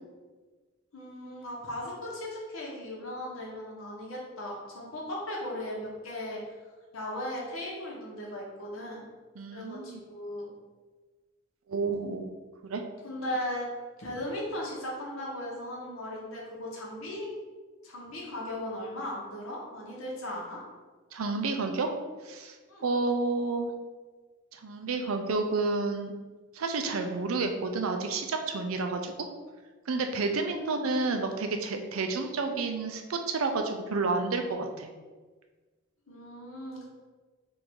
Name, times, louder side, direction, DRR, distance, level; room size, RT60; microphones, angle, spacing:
voice 1, 0.9-6.4 6.9-9.1 9.5-10.5 13.0-13.7 14.0-17.3 17.8-20.6 22.7-22.9 30.3-30.9 36.1-36.9, left 1 dB, 90° left, -3 dB, 1.2 m, -37 dB
voice 2, 9.4-10.0 11.7-12.3 12.6-12.8 21.1-21.9 22.3-22.5 22.8-23.7 24.5-26.1 26.5-29.1 29.9-34.9, right 3 dB, 90° right, 5 dB, 0.5 m, -30 dB
3.8 x 2.6 x 4.6 m, 1.4 s
head